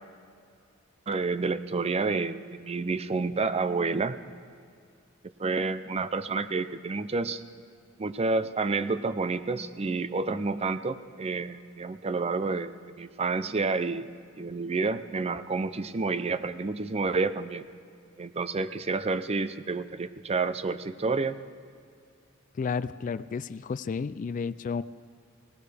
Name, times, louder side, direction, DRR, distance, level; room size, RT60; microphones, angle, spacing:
voice 1, 1.1-4.2 5.4-7.4 8.0-14.1 14.4-17.6 18.2-21.4, right 3 dB, 30° right, 13 dB, 0.5 m, -29 dB
voice 2, 22.5-24.8, left 5 dB, 40° left, 16 dB, 0.3 m, -32 dB
20.5 x 19.0 x 3.4 m, 2.3 s
head